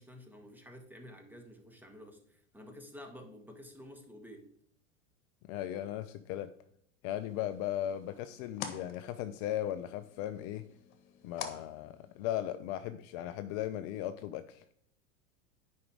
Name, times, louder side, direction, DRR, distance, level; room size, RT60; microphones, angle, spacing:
voice 1, 0.0-4.5, left 1 dB, 5° right, 4 dB, 1.6 m, -51 dB
voice 2, 5.5-6.5 7.0-10.7 11.2-14.6, left 12 dB, 45° left, 11 dB, 0.6 m, -37 dB
sound 1, 7.2-12.6, left 8 dB, 60° left, 1.5 m, -48 dB
9.5 x 5.3 x 5.0 m, 0.66 s
hypercardioid pair, 95°, 41 cm